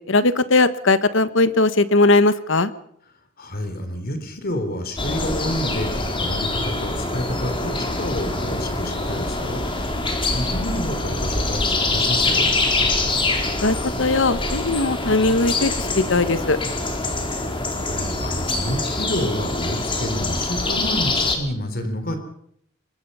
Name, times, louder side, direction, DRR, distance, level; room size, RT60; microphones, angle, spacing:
voice 1, 0.1-2.7 13.6-16.6, left 2 dB, 70° left, 13 dB, 1.3 m, -19 dB
voice 2, 3.4-9.6 10.0-12.5 17.7-22.2, equal, 50° left, 8 dB, 3.8 m, -29 dB
sound 1, 5.0-21.4, left 2 dB, 25° left, 3.6 m, -24 dB
24.0 x 21.5 x 5.6 m, 0.68 s
head